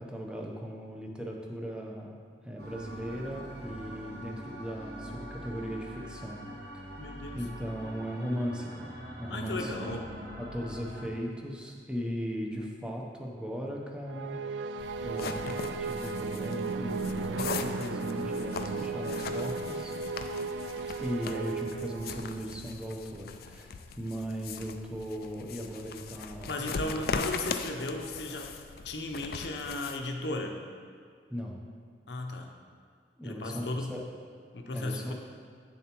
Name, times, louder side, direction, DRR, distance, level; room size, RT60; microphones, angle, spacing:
voice 1, 0.0-6.4 7.3-10.0 10.4-14.8 15.0-19.9 21.0-27.0 31.3-31.6 33.2-34.0 34.7-35.1, equal, 5° right, -1 dB, 0.7 m, -38 dB
sound 1, 2.6-11.1, equal, 60° right, 1.2 m, -44 dB
voice 2, 7.0-7.4 9.3-10.1 26.5-28.5 28.8-30.6 32.1-32.5 33.2-33.9 34.5-35.1, left 2 dB, 75° left, 3 dB, 0.7 m, -35 dB
sound 2, 14.1-22.5, right 3 dB, 80° right, 0.3 m, -35 dB
sound 3, 14.8-30.0, left 5 dB, 55° left, 0.4 m, -40 dB
8.4 x 7.0 x 3.0 m, 2.1 s
head